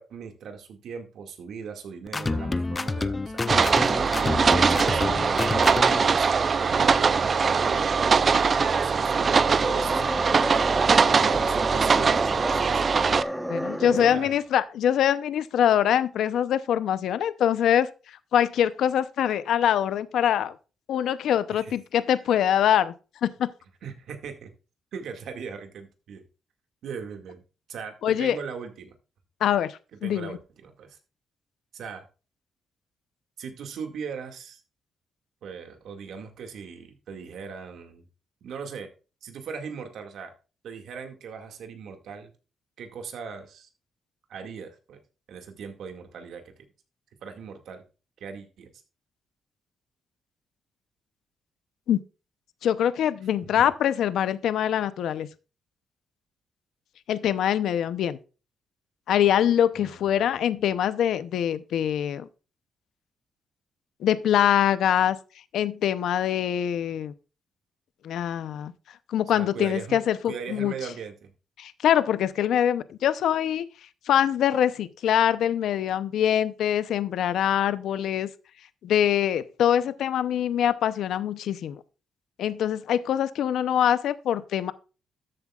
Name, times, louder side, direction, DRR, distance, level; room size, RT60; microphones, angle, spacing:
voice 1, 0.0-3.4 3.8-5.1 6.1-8.0 8.4-10.3 10.5-10.7 11.0-12.8 13.8-14.3 21.5-21.7 23.8-24.5 24.9-26.2 26.8-27.4 27.7-28.9 30.0-31.0 31.7-32.0 33.4-34.6 35.4-38.0 38.4-38.9 39.2-40.3 40.6-42.3 42.8-43.7 44.3-45.0 45.3-46.5 47.2-47.8 48.2-48.7 53.4-53.7 59.8-60.0 69.3-71.3, right 6 dB, 75° right, 2.0 m, -38 dB
sound 1, 2.1-6.1, left 3 dB, 20° left, 0.6 m, -28 dB
sound 2, 3.5-13.2, right 5 dB, 40° right, 0.5 m, -22 dB
sound 3, 9.2-14.5, equal, 5° right, 1.0 m, -32 dB
voice 2, 13.5-17.9 18.3-20.5 20.9-22.9 23.2-23.5 28.0-28.4 29.4-30.4 51.9-52.0 52.6-55.3 57.1-58.2 59.1-62.3 64.0-65.2 65.5-67.1 68.0-68.7 69.1-70.7 71.6-73.7 74.1-78.3 78.8-81.8 82.4-84.7, left 10 dB, 80° left, 0.7 m, -24 dB
13.5 x 7.9 x 2.4 m
cardioid pair, 105°, 0 cm